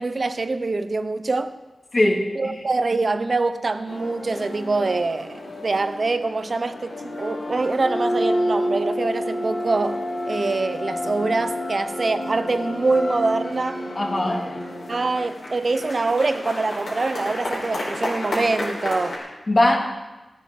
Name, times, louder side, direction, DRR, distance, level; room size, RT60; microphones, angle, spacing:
voice 1, 0.0-1.5 2.4-13.8 14.9-19.2, right 3 dB, 55° right, 11 dB, 0.9 m, -24 dB
voice 2, 1.9-2.6 13.9-14.5 19.5-19.8, left 1 dB, 45° left, 0 dB, 2.8 m, -20 dB
sound 1, 3.9-19.1, equal, 85° left, 4.2 m, -30 dB
15.5 x 9.4 x 7.2 m, 1.1 s
cardioid pair, 60°, 0 cm